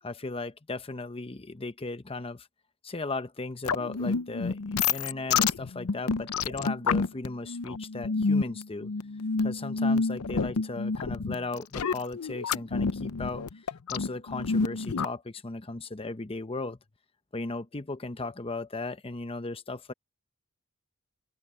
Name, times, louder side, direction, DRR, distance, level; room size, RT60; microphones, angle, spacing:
voice 1, 0.0-2.5 2.8-4.6 4.9-8.9 9.4-13.5 13.9-16.8 17.3-19.9, left 3 dB, 25° left, 0.9 m, -36 dB
sound 1, 3.7-15.1, left 4 dB, 75° left, 0.6 m, -29 dB
open air
head